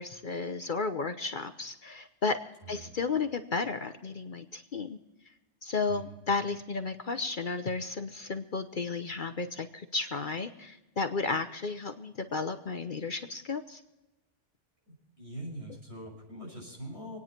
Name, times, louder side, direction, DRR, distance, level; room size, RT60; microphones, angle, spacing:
voice 1, 0.0-2.4 2.7-5.0 5.6-13.8, left 4 dB, 50° left, 8 dB, 0.9 m, -33 dB
voice 2, 14.9-17.2, right 1 dB, 65° right, -2 dB, 6.5 m, -43 dB
27.0 x 9.7 x 4.4 m, 1.0 s
omnidirectional pair, 1.2 m